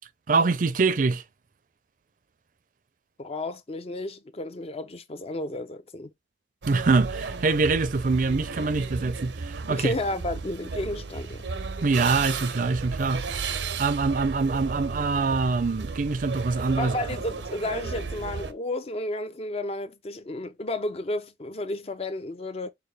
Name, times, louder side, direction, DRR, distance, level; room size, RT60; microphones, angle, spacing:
voice 1, 0.3-1.2 6.7-9.9 11.8-16.9, right 4 dB, 50° right, 0.5 m, -24 dB
voice 2, 3.2-6.1 9.7-11.4 16.8-22.7, left 1 dB, 35° left, 0.5 m, -32 dB
sound 1, 6.6-18.5, right 4 dB, 90° right, 0.7 m, -34 dB
6.6 x 2.2 x 3.2 m
head